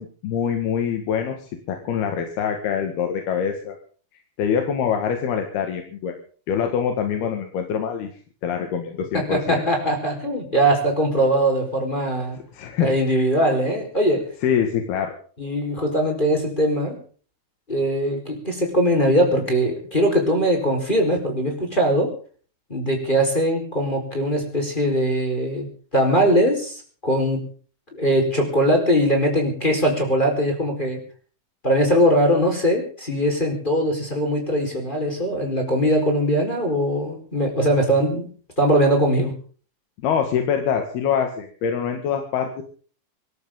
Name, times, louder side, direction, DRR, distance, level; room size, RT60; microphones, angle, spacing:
voice 1, 0.0-3.8 4.4-6.1 6.5-8.1 8.4-9.6 12.5-13.2 14.4-15.1 40.0-42.6, left 7 dB, 90° left, 4 dB, 3.9 m, -24 dB
voice 2, 9.1-12.4 12.8-14.3 15.4-17.0 17.7-22.1 22.7-25.7 25.9-27.4 27.9-31.0 31.6-38.3 38.6-39.3, equal, 10° left, 1 dB, 4.4 m, -21 dB
25.0 x 13.5 x 3.8 m, 0.43 s
omnidirectional pair, 4.4 m